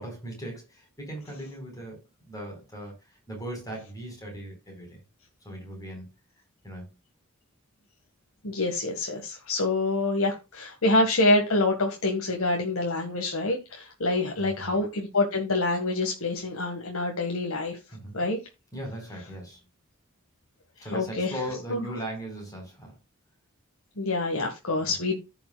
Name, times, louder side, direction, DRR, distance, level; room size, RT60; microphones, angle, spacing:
voice 1, 0.0-5.0 5.4-6.1 6.6-6.9 14.4-14.8 17.9-18.2 18.7-19.6 20.8-23.0 24.8-25.0, right 1 dB, 15° left, 4.5 m, -38 dB
voice 2, 8.4-17.8 18.1-18.4 20.9-21.3 21.7-21.8 24.0-25.2, left 2 dB, 80° left, 1.7 m, -26 dB
14.5 x 6.0 x 2.3 m
head